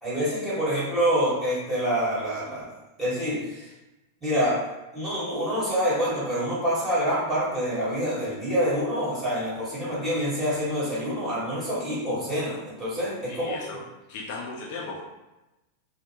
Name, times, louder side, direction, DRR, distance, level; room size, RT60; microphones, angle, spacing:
voice 1, 0.0-2.7 3.0-3.7 4.2-4.6 4.9-13.6, equal, 15° right, -8 dB, 1.4 m, -26 dB
voice 2, 13.3-13.8 14.1-15.0, left 3 dB, 50° left, -3 dB, 0.5 m, -36 dB
2.8 x 2.0 x 2.8 m, 1.0 s
figure-of-eight pair, 90°, 0 cm